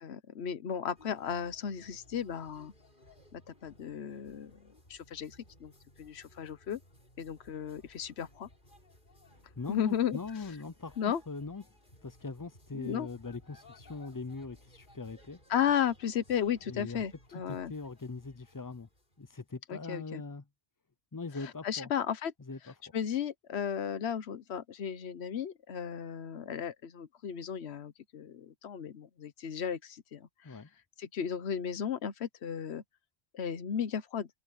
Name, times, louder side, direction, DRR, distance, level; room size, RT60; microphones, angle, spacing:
voice 1, 0.0-2.7 3.3-4.5 4.9-5.7 6.0-6.8 7.2-8.5 9.7-10.2 11.0-11.2 12.7-13.1 15.5-17.7 19.7-20.2 21.6-22.3 22.9-30.6 31.0-32.8 33.3-34.3, left 8 dB, 85° left, 1.2 m, -34 dB
sound 1, 0.9-19.5, left 1 dB, 50° left, 5.2 m, -60 dB
voice 2, 9.6-11.0 11.3-11.6 12.0-15.4 16.7-17.0 17.5-18.9 19.2-20.4 21.1-21.9 22.5-22.7 30.4-30.7, left 4 dB, 25° left, 0.5 m, -41 dB
omnidirectional pair, 1.1 m